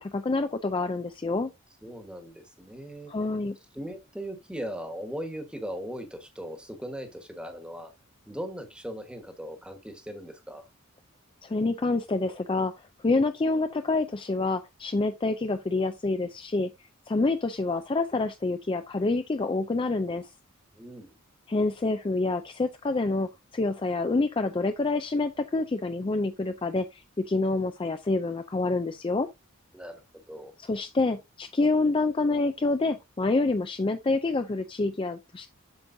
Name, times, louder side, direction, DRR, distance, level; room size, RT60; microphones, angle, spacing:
voice 1, 0.0-1.5 3.1-3.6 11.4-16.7 17.1-20.3 21.5-29.3 30.6-35.5, left 3 dB, 25° left, 0.4 m, -27 dB
voice 2, 1.8-3.1 3.7-7.9 8.3-10.7 20.7-21.1 29.7-30.5, equal, 5° right, 1.3 m, -39 dB
8.0 x 6.8 x 2.7 m
head